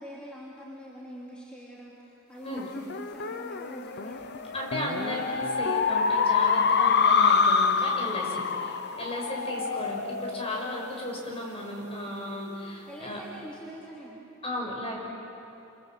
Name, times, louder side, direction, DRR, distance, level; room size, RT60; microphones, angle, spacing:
voice 1, 0.0-4.8 9.4-9.7 12.9-14.3, equal, 5° left, -6 dB, 3.2 m, -44 dB
sound 1, 2.6-11.4, left 5 dB, 55° left, 1.0 m, -26 dB
voice 2, 4.5-13.2 14.4-15.0, left 1 dB, 30° left, -1 dB, 6.2 m, -35 dB
27.5 x 27.5 x 7.8 m, 2.9 s
head